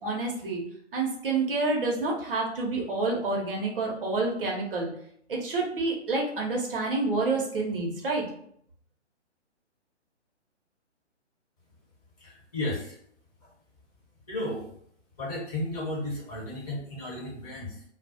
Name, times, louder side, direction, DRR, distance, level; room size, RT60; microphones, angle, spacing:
voice 1, 0.0-0.6 0.9-4.9 5.3-8.2, right 3 dB, 50° right, -1 dB, 0.7 m, -28 dB
voice 2, 12.2-13.0 13.4-13.5 14.3-14.7 15.2-17.8, left 1 dB, 30° left, -6 dB, 1.1 m, -34 dB
2.3 x 2.0 x 2.7 m, 0.67 s
figure-of-eight pair, 135°, 36 cm